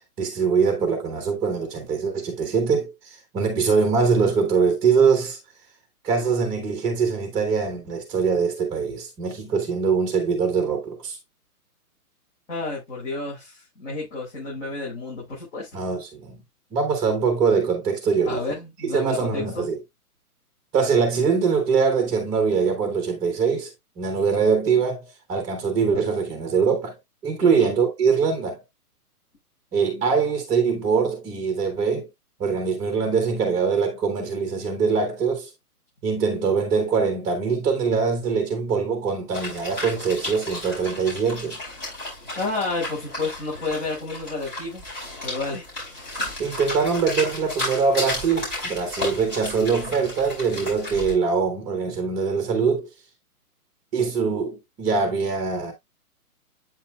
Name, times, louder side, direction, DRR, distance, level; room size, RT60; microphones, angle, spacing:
voice 1, 0.2-5.4 6.0-11.2 15.7-16.4 16.7-18.4 18.9-19.8 20.7-27.0 27.2-28.6 29.7-32.1 32.4-35.5 36.0-41.6 46.4-52.9 53.9-55.7, right 5 dB, 10° right, 0.9 m, -23 dB
voice 2, 12.5-15.7 18.2-19.7 27.4-27.7 42.4-44.8 45.2-45.6, left 3 dB, 50° left, 5.5 m, -30 dB
sound 1, 39.3-51.1, left 1 dB, 25° left, 4.7 m, -33 dB
8.6 x 5.6 x 2.2 m
hypercardioid pair, 165°, 45 cm